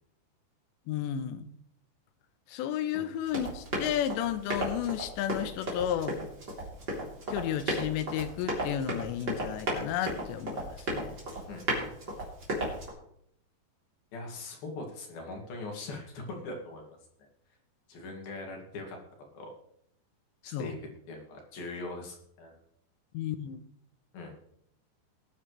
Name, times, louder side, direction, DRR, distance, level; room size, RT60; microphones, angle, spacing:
voice 1, 0.9-1.5 2.5-6.2 7.3-11.2 20.4-20.7 23.1-23.6, left 10 dB, 85° left, 11 dB, 3.0 m, -33 dB
Run, 3.2-12.9, right 1 dB, 25° right, 3.6 m, -35 dB
voice 2, 11.5-12.2 14.1-17.0 17.9-19.0 19.3-19.5 20.4-20.8 21.1-22.6 24.1-24.4, left 2 dB, 60° left, 1 dB, 3.9 m, -41 dB
20.5 x 9.1 x 3.3 m, 0.71 s
omnidirectional pair, 5.1 m